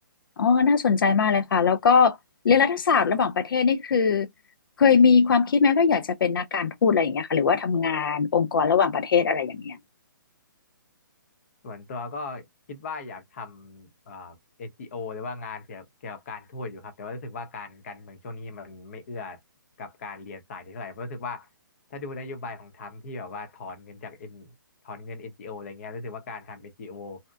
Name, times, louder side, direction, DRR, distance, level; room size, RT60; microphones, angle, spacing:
voice 1, 0.4-2.2 2.4-4.3 4.8-9.8, left 5 dB, 85° left, 0.4 m, -21 dB
voice 2, 11.6-12.4 12.7-19.4 19.8-21.5 21.9-24.5 24.8-27.2, left 3 dB, 40° left, 0.8 m, -38 dB
2.7 x 2.1 x 2.2 m
hypercardioid pair, 165°, 11 cm